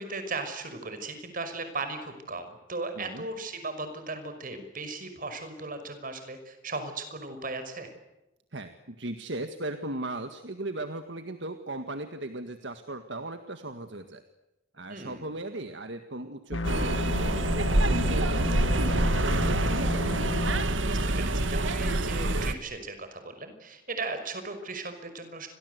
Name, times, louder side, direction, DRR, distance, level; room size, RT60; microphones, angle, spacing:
voice 1, 0.0-7.9 14.9-15.3 20.7-25.5, right 3 dB, 45° right, 8 dB, 5.6 m, -37 dB
voice 2, 8.5-14.2 14.7-19.9, right 2 dB, 65° right, 8 dB, 1.9 m, -37 dB
sound 1, 16.5-20.6, left 2 dB, 80° left, 1.7 m, -32 dB
sound 2, 16.6-22.5, right 2 dB, 85° right, 1.9 m, -26 dB
30.0 x 24.0 x 8.2 m, 0.98 s
head